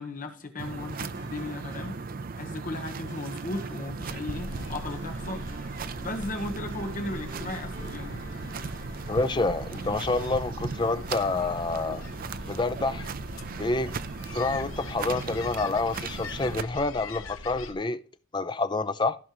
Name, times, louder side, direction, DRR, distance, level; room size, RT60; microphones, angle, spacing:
voice 1, 0.0-1.9 2.3-5.4 6.0-8.2, left 2 dB, 40° left, 1.1 m, -36 dB
sound 1, 0.6-16.6, right 4 dB, 45° right, 0.5 m, -37 dB
sound 2, 0.9-11.2, right 2 dB, 60° right, 4.3 m, -49 dB
sound 3, 4.5-17.7, left 2 dB, 85° left, 1.0 m, -42 dB
voice 2, 9.1-12.0 12.5-13.1 13.6-13.9 14.3-18.0 18.3-19.2, left 3 dB, 20° left, 0.5 m, -28 dB
14.5 x 5.5 x 3.0 m
head